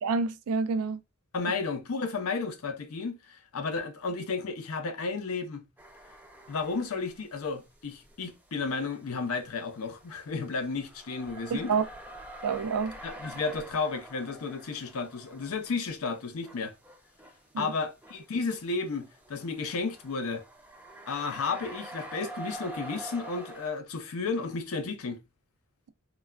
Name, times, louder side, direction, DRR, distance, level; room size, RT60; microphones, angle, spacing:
voice 1, 0.0-1.0 11.7-11.8 12.4-12.9 17.5-17.7, right 5 dB, 90° right, 0.4 m, -28 dB
voice 2, 1.3-5.6 6.5-11.7 13.0-16.7 17.6-20.4 21.1-25.2, left 4 dB, 80° left, 0.6 m, -33 dB
sound 1, 5.8-7.3 7.6-23.7, right 1 dB, 5° right, 0.4 m, -47 dB
3.2 x 2.2 x 2.2 m
head